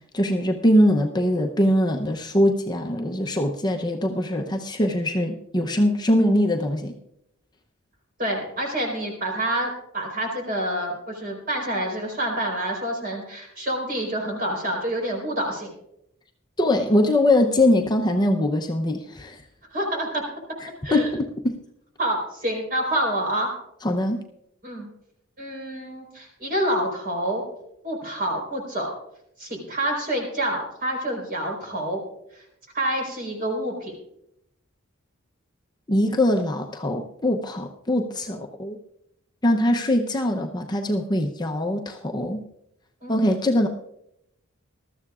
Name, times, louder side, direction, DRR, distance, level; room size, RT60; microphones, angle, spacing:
voice 1, 0.1-7.0 16.6-19.4 20.6-21.6 23.8-24.2 35.9-38.8 39.4-42.5 43.1-43.7, left 1 dB, 20° left, 3 dB, 0.7 m, -22 dB
voice 2, 8.2-15.7 19.7-20.2 20.8-21.1 22.0-23.5 24.6-24.9 25.4-27.4 27.8-28.9 29.4-32.0 32.3-32.4 32.7-33.9 43.0-43.3, right 1 dB, 40° right, 0 dB, 4.2 m, -27 dB
20.5 x 13.5 x 2.4 m, 0.79 s
head